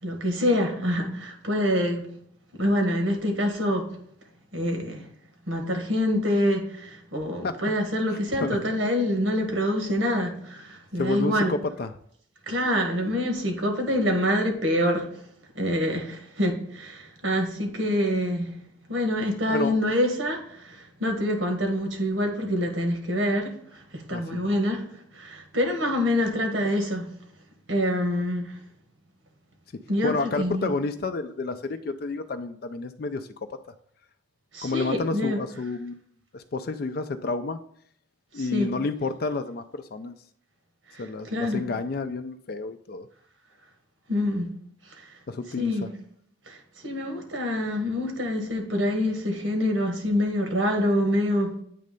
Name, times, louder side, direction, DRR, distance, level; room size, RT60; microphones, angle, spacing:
voice 1, 0.0-2.0 2.6-3.9 4.5-5.1 5.5-11.5 12.5-15.2 15.5-18.5 18.9-24.8 25.1-27.1 27.7-28.6 29.9-30.7 34.5-35.4 38.3-38.7 40.9-41.6 44.1-44.5 44.9-45.1 45.6-45.9 46.5-51.6, left 1 dB, 85° right, 3 dB, 1.6 m, -26 dB
voice 2, 11.0-11.9 19.5-19.7 24.1-24.4 30.0-33.6 34.6-36.0 36.3-37.6 38.3-40.1 41.0-43.1 45.3-45.9, left 3 dB, 50° left, 8 dB, 0.4 m, -30 dB
8.4 x 3.2 x 5.2 m, 0.66 s
head